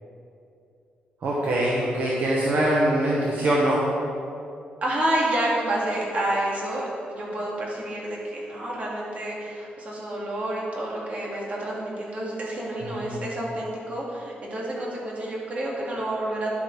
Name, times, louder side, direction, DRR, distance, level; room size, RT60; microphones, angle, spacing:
voice 1, 1.2-3.8 12.8-13.2, right 1 dB, 65° right, -4 dB, 1.8 m, -23 dB
voice 2, 4.8-16.5, right 1 dB, 45° right, -4 dB, 3.3 m, -29 dB
12.5 x 10.5 x 5.2 m, 2.7 s
cardioid pair, 135°, 3 cm